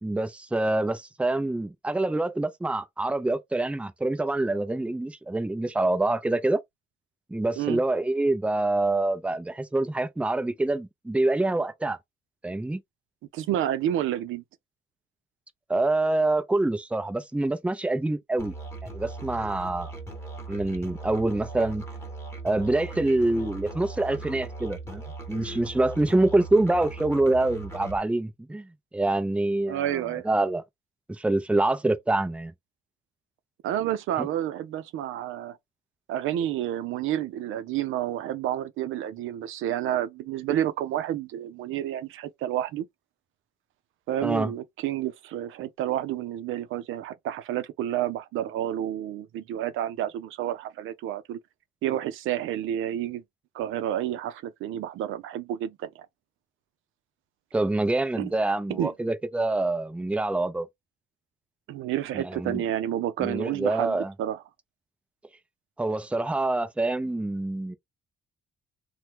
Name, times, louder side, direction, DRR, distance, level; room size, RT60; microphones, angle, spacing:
voice 1, 0.0-6.6 7.3-12.0 12.4-12.8 15.7-18.5 18.9-19.9 20.5-21.8 22.4-25.0 25.3-30.6 31.1-32.5 34.2-34.3 44.2-44.5 57.5-60.7 62.1-62.6 63.2-64.1 65.8-67.8, right 2 dB, 5° right, 0.5 m, -26 dB
voice 2, 13.3-14.4 29.7-30.3 33.6-35.6 36.1-42.9 44.1-51.4 51.8-53.2 53.5-56.1 58.2-58.3 58.7-58.9 61.7-64.4, right 11 dB, 85° right, 0.5 m, -30 dB
Musical instrument, 18.4-28.0, right 3 dB, 15° left, 1.1 m, -39 dB
2.9 x 2.2 x 3.3 m
cardioid pair, 90°, 20 cm